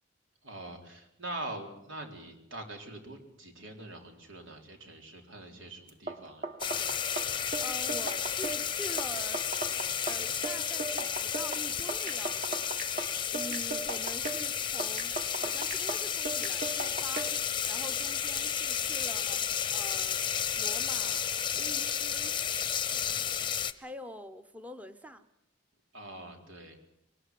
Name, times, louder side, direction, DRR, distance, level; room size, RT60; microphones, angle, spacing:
voice 1, 0.4-6.5 22.9-23.3 25.9-26.8, right 1 dB, 90° right, 3 dB, 4.0 m, -44 dB
sound 1, 5.9-17.5, right 3 dB, 45° right, 1.9 m, -38 dB
sound 2, 6.6-23.7, left 8 dB, 25° left, 0.7 m, -32 dB
voice 2, 7.3-9.7 10.0-20.2 20.5-22.4 23.8-25.3, equal, 10° right, 9 dB, 0.8 m, -46 dB
22.5 x 19.5 x 7.7 m, 0.81 s
head